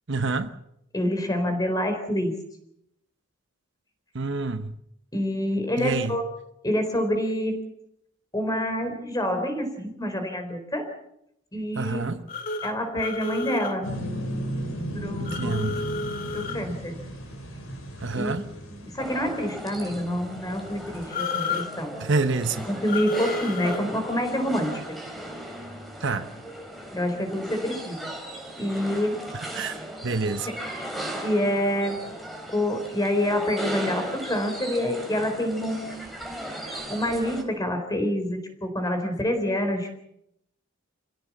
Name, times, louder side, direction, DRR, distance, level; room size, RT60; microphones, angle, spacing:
voice 1, 0.1-0.5 4.1-4.7 5.8-6.2 11.7-12.2 15.2-15.8 18.0-18.4 22.0-22.7 26.0-26.3 29.3-29.8 30.0-30.7, right 3 dB, 55° right, 1.0 m, -27 dB
voice 2, 0.9-2.3 5.1-6.2 6.6-7.6 8.3-10.9 11.5-12.0 12.6-13.9 14.9-15.5 16.3-17.0 18.1-18.4 18.7-22.0 22.7-25.0 26.9-28.1 28.6-29.2 30.5-30.6 31.2-32.0 32.5-36.0 36.6-39.9, left 1 dB, 15° left, 4.0 m, -27 dB
sound 1, 12.3-13.7 15.2-16.6 21.1-21.7 22.9-23.8, left 3 dB, 40° left, 2.4 m, -31 dB
sound 2, 13.8-21.1, equal, 75° left, 5.7 m, -36 dB
sound 3, 19.0-37.4, right 1 dB, ahead, 3.6 m, -37 dB
27.0 x 16.5 x 7.3 m
head